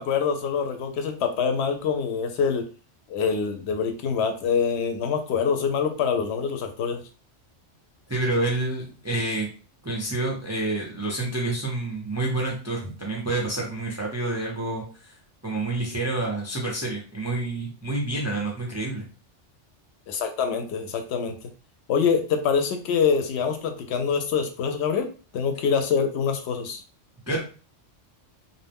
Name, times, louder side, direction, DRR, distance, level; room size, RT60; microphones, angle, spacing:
voice 1, 0.0-2.7 3.1-7.0 20.1-21.4 21.9-25.1 25.3-26.8, left 6 dB, 65° left, 5 dB, 0.8 m, -25 dB
voice 2, 8.1-9.5 9.8-15.1 15.4-19.1 27.3-27.4, right 2 dB, 25° right, -2 dB, 0.4 m, -28 dB
2.5 x 2.1 x 3.4 m, 0.37 s
omnidirectional pair, 1.3 m